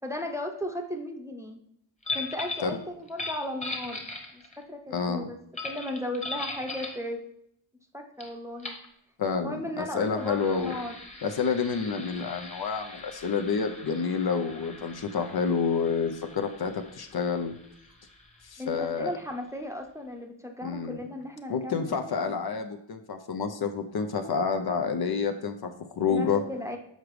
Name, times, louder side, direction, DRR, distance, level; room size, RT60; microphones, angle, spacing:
voice 1, 0.0-1.6 2.1-4.1 4.3-5.4 5.6-7.2 7.9-8.7 9.4-10.9 18.6-21.9 22.1-22.4 26.1-26.8, left 1 dB, 5° right, 2 dB, 0.7 m, -36 dB
sound 1, 2.0-2.7 3.1-4.6 5.6-7.0 8.2-8.3 8.6-8.9 9.9-19.2, left 2 dB, 15° left, 1.1 m, -40 dB
voice 2, 4.9-5.3 9.2-10.7 11.2-17.5 18.4-19.2 20.6-21.0 21.5-26.4, left 5 dB, 55° left, 6 dB, 0.6 m, -29 dB
6.6 x 4.8 x 3.1 m, 0.74 s
wide cardioid pair, 75°, 46 cm